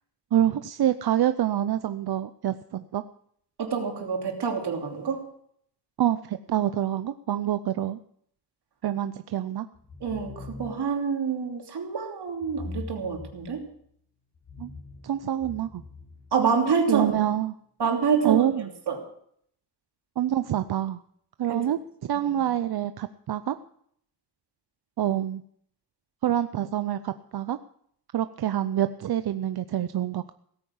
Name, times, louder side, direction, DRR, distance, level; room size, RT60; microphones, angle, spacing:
voice 1, 0.3-3.0 6.0-8.0 8.8-9.7 14.6-14.7 15.0-15.8 16.9-17.5 18.2-18.7 20.2-21.0 21.4-23.6 25.0-25.4 26.2-27.6 28.1-30.3, right 11 dB, 70° right, 11 dB, 0.6 m, -26 dB
voice 2, 3.6-5.2 10.0-13.6 16.3-17.1 17.8-18.5 18.9-19.0 21.5-21.6 22.1-22.3, right 6 dB, 90° right, 2 dB, 3.0 m, -27 dB
sound 1, 9.7-11.0 12.4-13.8 14.3-16.8, left 3 dB, 50° left, 5.1 m, -43 dB
17.0 x 9.3 x 7.2 m, 0.66 s
wide cardioid pair, 135°, 39 cm